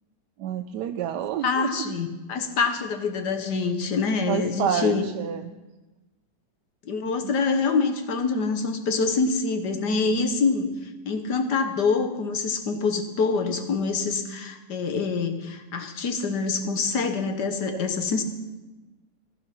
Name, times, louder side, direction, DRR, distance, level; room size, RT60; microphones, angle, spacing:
voice 1, 0.4-1.8 4.3-5.5 7.2-7.3 17.7-17.8, right 9 dB, 85° right, 6 dB, 1.2 m, -29 dB
voice 2, 1.4-5.0 6.9-10.7 11.1-18.2, left 4 dB, 80° left, 7 dB, 1.8 m, -25 dB
15.0 x 10.5 x 5.8 m, 1.1 s
omnidirectional pair, 1.8 m